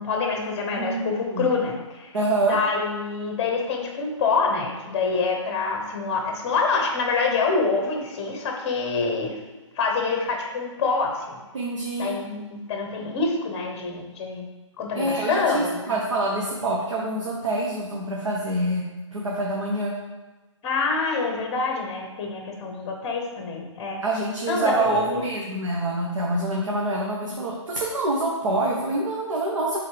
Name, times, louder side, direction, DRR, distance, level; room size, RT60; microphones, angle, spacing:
voice 1, 0.0-2.2 2.4-9.4 9.7-11.4 12.0-14.5 14.8-15.9 20.6-24.0 24.5-25.3 27.2-27.3, left 4 dB, 20° left, 1 dB, 1.0 m, -26 dB
voice 2, 0.8-1.5 2.1-2.6 11.5-12.1 14.9-18.8 19.1-19.9 24.0-29.8, right 2 dB, 70° right, -3 dB, 1.2 m, -26 dB
8.3 x 3.8 x 3.3 m, 1.2 s
hypercardioid pair, 160°, 16 cm